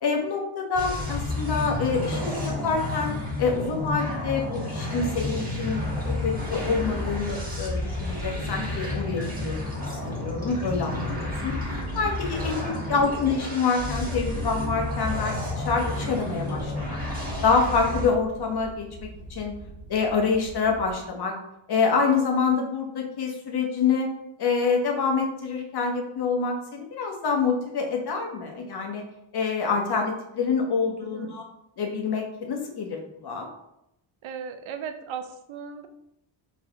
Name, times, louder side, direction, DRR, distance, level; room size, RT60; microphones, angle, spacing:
voice 1, 0.0-3.1 3.4-11.5 11.9-17.0 17.4-18.9 19.3-19.6 19.9-21.3 21.7-24.1 24.4-29.0 29.3-31.5 31.8-33.5, left 5 dB, 55° left, 1 dB, 1.1 m, -26 dB
sound 1, 0.8-18.1, left 1 dB, 20° right, 1.5 m, -31 dB
sound 2, 14.7-21.0, right 2 dB, 80° left, 1.5 m, -44 dB
voice 2, 31.0-31.3 34.2-35.9, right 7 dB, 75° right, 8 dB, 0.7 m, -36 dB
4.2 x 4.1 x 2.9 m, 0.83 s
cardioid pair, 100°, 47 cm